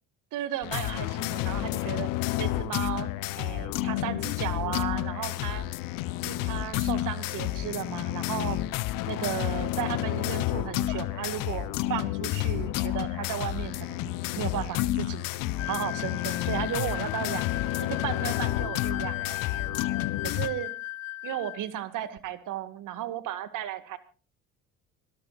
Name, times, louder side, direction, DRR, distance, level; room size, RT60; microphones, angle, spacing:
voice 1, 0.3-2.1 2.4-3.1 3.4-5.6 6.2-8.6 9.1-15.3 15.6-17.4 17.8-19.4 20.2-20.7 21.2-24.0, right 11 dB, 50° right, 11 dB, 2.2 m, -34 dB
sound 1, 0.6-20.5, left 15 dB, 55° left, 1.1 m, -30 dB
sound 2, 15.6-21.6, left 17 dB, 75° left, 1.1 m, -36 dB
25.5 x 17.5 x 2.6 m, 0.35 s
hypercardioid pair, 60°, 39 cm